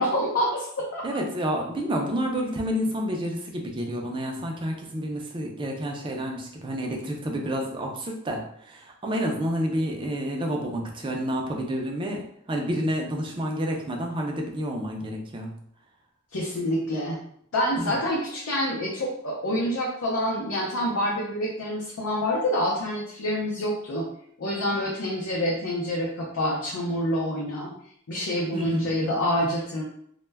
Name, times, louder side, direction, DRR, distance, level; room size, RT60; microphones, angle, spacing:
voice 1, 0.0-1.0 16.3-17.2 17.5-24.1 24.4-27.7 28.1-29.8, equal, 75° left, -3 dB, 0.5 m, -27 dB
voice 2, 1.0-15.5 17.8-18.0 28.5-29.1 29.4-29.6, equal, 25° right, 1 dB, 0.4 m, -29 dB
2.2 x 2.1 x 3.2 m, 0.68 s
head